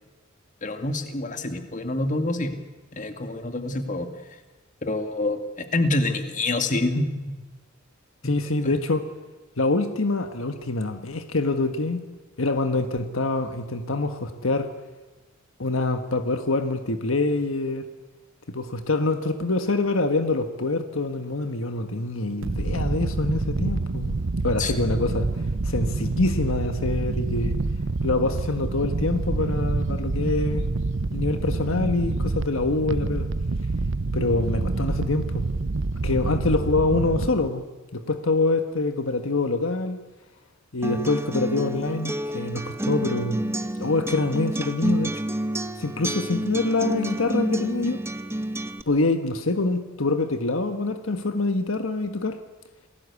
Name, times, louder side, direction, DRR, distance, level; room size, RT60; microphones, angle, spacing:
voice 1, 0.6-2.5 2.9-4.1 4.8-7.1 8.6-8.8 24.6-24.7, left 2 dB, 40° left, 7 dB, 2.3 m, -26 dB
voice 2, 8.2-9.0 9.6-12.0 12.4-14.7 15.6-17.9 18.5-24.2 24.4-25.3 25.6-27.6 28.0-30.6 31.1-33.3 34.1-35.5 36.0-37.6 37.9-40.0 40.7-43.5 43.8-45.1 45.8-48.0 48.9-52.4, left 2 dB, 75° left, 8 dB, 1.4 m, -25 dB
sound 1, 22.4-37.5, right 3 dB, 65° right, 0.8 m, -27 dB
Acoustic guitar, 40.8-48.8, right 1 dB, 10° right, 1.0 m, -29 dB
27.5 x 19.0 x 8.4 m, 1.2 s
head